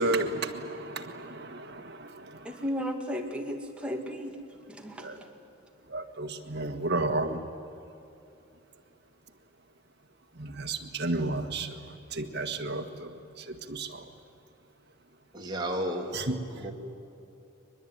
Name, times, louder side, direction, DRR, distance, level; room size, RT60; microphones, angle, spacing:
voice 1, 0.0-2.6 5.0-5.2 5.9-7.4 10.4-14.1 16.1-16.4, right 2 dB, 50° right, 6 dB, 1.6 m, -32 dB
voice 2, 2.4-4.4 4.7-5.3, equal, 5° right, 1 dB, 2.1 m, -34 dB
voice 3, 15.3-16.7, equal, 20° right, 0 dB, 2.8 m, -33 dB
23.5 x 21.5 x 9.4 m, 2.8 s
head